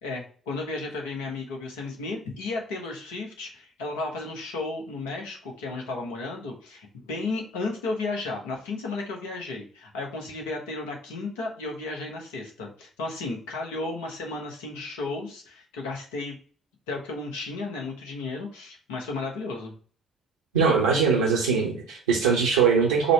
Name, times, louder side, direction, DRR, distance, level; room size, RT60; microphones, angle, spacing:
voice 1, 0.0-16.4 16.9-19.7, left 3 dB, 75° left, 1 dB, 0.9 m, -34 dB
voice 2, 20.5-23.1, right 5 dB, 80° right, -3 dB, 0.7 m, -21 dB
5.1 x 2.2 x 4.4 m, 0.43 s
figure-of-eight pair, 40°, 0 cm